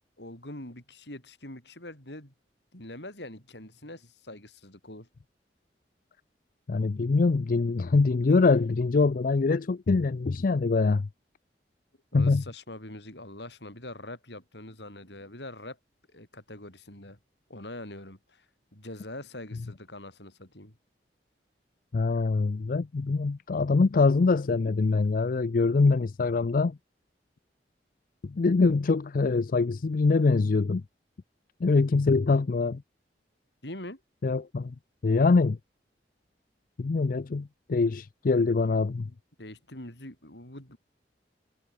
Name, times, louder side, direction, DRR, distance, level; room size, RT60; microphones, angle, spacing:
voice 1, 0.2-2.3 2.7-5.1 12.1-15.8 16.1-17.2 17.5-18.5 18.7-20.8 33.6-34.0 39.1-40.8, left 1 dB, 75° left, 7.6 m, -43 dB
voice 2, 6.7-11.1 12.1-12.4 21.9-26.8 28.2-30.8 31.6-32.8 34.2-34.7 35.0-35.6 36.8-39.1, left 3 dB, 50° left, 0.5 m, -24 dB
head